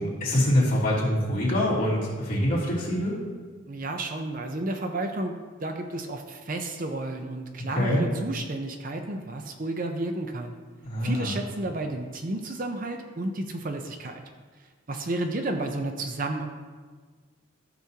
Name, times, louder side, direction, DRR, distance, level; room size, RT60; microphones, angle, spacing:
voice 1, 0.0-3.2 7.8-8.0 10.8-11.3, left 1 dB, 40° left, -8 dB, 2.9 m, -24 dB
voice 2, 3.7-5.3 5.6-10.6 11.0-14.2 14.9-16.5, right 2 dB, 40° right, 5 dB, 0.6 m, -32 dB
14.0 x 6.1 x 2.8 m, 1.5 s
head